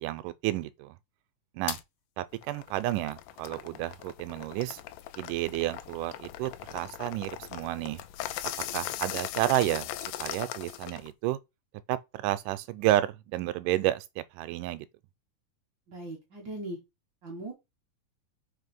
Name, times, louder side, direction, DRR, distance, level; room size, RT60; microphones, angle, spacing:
voice 1, 0.0-1.0 1.6-1.8 2.2-4.8 5.2-8.0 8.7-9.9 10.2-11.4 11.9-14.9, right 15 dB, 80° right, 2.1 m, -31 dB
sound 1, 1.7-1.8 2.3-11.1, left 13 dB, 85° left, 2.2 m, -39 dB
voice 2, 15.9-16.8 17.2-17.5, right 2 dB, 45° right, 1.6 m, -39 dB
4.8 x 4.1 x 5.3 m
omnidirectional pair, 3.9 m